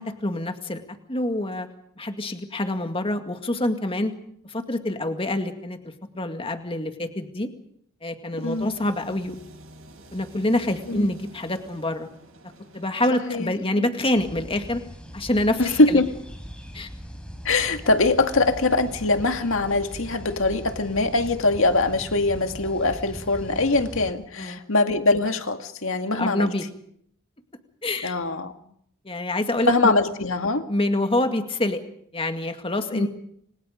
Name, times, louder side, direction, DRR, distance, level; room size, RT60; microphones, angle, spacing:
voice 1, 0.0-1.7 2.0-4.1 4.4-5.8 6.1-7.5 8.0-9.4 10.1-12.1 12.7-14.8 15.1-16.0 16.7-16.9 24.4-24.6 26.1-26.6 27.8-28.1 29.0-29.9 30.7-31.8 32.1-33.1, left 1 dB, 25° left, 6 dB, 2.1 m, -26 dB
sound 1, 8.3-13.6, right 1 dB, 65° right, 7.9 m, -49 dB
voice 2, 8.4-8.7 10.9-11.1 13.1-13.5 13.8-13.9 15.6-16.1 17.4-26.5 28.0-28.5 29.6-30.7 32.9-33.1, left 2 dB, 65° left, 6 dB, 2.1 m, -22 dB
sound 2, 14.1-24.1, equal, 5° left, 4.5 m, -40 dB
29.0 x 26.5 x 5.2 m, 0.70 s
head